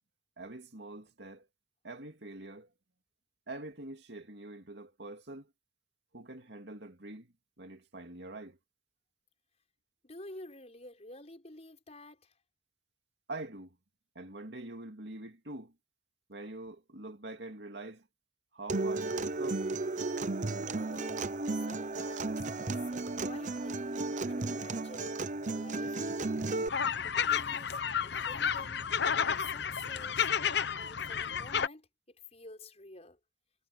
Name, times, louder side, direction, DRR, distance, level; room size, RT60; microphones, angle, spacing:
voice 1, 0.4-1.5 1.8-2.7 3.5-5.5 6.1-8.6 13.3-13.8 14.1-15.7 16.3-18.1 18.5-19.7, right 2 dB, 60° right, 2.5 m, -45 dB
voice 2, 10.0-12.4 20.7-21.2 21.7-26.4 27.0-30.3 30.7-33.2, left 2 dB, 35° left, 5.5 m, -51 dB
Acoustic guitar, 18.7-26.7, right 3 dB, 40° right, 0.8 m, -34 dB
sound 1, 26.7-31.7, left 7 dB, 60° left, 0.9 m, -31 dB
head